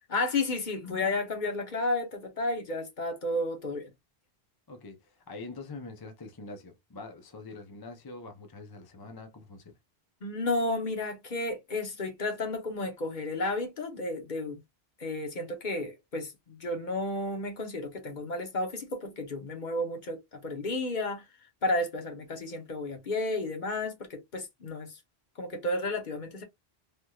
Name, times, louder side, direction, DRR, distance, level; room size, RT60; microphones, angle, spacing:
voice 1, 0.1-3.9 10.2-14.6 15.0-21.2 21.6-24.9 25.4-26.4, left 2 dB, 50° left, 1.0 m, -32 dB
voice 2, 4.7-9.7, left 3 dB, 25° left, 0.6 m, -44 dB
3.4 x 2.9 x 2.3 m
omnidirectional pair, 1.1 m